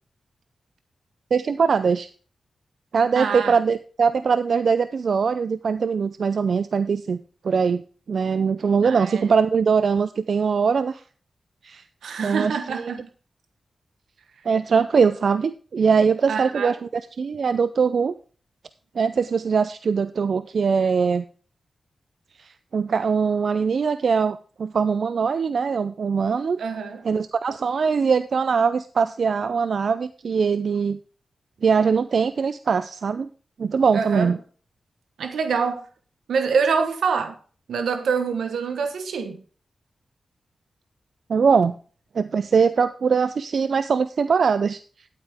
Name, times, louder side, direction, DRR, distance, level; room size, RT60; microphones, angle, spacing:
voice 1, 1.3-2.1 2.9-7.2 7.4-7.8 8.1-11.0 11.6-11.8 12.2-12.9 14.4-18.1 19.0-21.2 22.4-26.6 27.0-31.0 31.6-33.3 33.6-34.4 41.3-41.7 42.1-44.8, right 5 dB, 70° right, 0.4 m, -22 dB
voice 2, 3.2-3.5 8.8-9.2 12.0-13.1 16.3-16.7 26.6-27.0 33.9-34.3 35.2-35.8 36.3-37.3 37.7-39.4, right 5 dB, 90° right, 1.1 m, -25 dB
12.0 x 8.4 x 3.5 m
cardioid pair, 45°, 0 cm